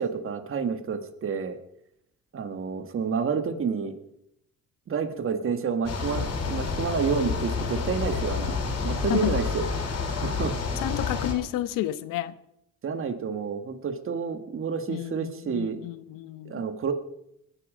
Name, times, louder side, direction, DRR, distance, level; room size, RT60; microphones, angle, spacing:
voice 1, 0.0-1.6 2.3-3.9 4.9-9.6 10.1-10.5 12.8-15.8 16.5-16.9, right 6 dB, 40° right, 8 dB, 1.7 m, -29 dB
sound 1, 5.9-11.3, left 5 dB, 50° left, 4.9 m, -29 dB
voice 2, 10.8-12.3 14.9-16.6, left 14 dB, 80° left, 14 dB, 1.0 m, -31 dB
21.0 x 10.5 x 5.1 m, 0.78 s
cardioid pair, 95°, 32 cm